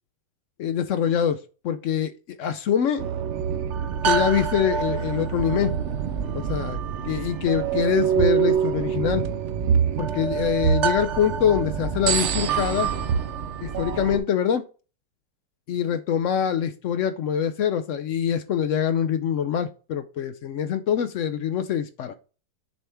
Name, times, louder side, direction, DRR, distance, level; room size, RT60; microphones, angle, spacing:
voice 1, 0.6-2.1 2.4-3.0 4.0-5.8 6.3-6.8 7.0-9.2 10.0-12.9 13.6-14.6 15.7-22.2, left 9 dB, 80° left, 9 dB, 0.6 m, -24 dB
sound 1, 3.0-14.2, right 7 dB, 60° right, 0.7 m, -25 dB
6.9 x 3.4 x 4.3 m, 0.35 s
omnidirectional pair, 1.9 m